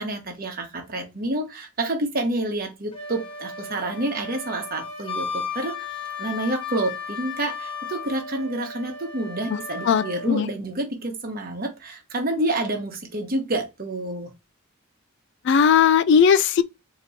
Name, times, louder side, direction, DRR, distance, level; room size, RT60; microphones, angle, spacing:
voice 1, 0.0-5.9 6.2-14.3, right 1 dB, 45° right, 1.2 m, -28 dB
Wind instrument woodwind instrument, 2.9-10.4, left 5 dB, 25° left, 0.9 m, -35 dB
voice 2, 9.9-10.5 15.4-16.6, left 7 dB, 55° left, 0.3 m, -18 dB
4.2 x 3.0 x 4.1 m
head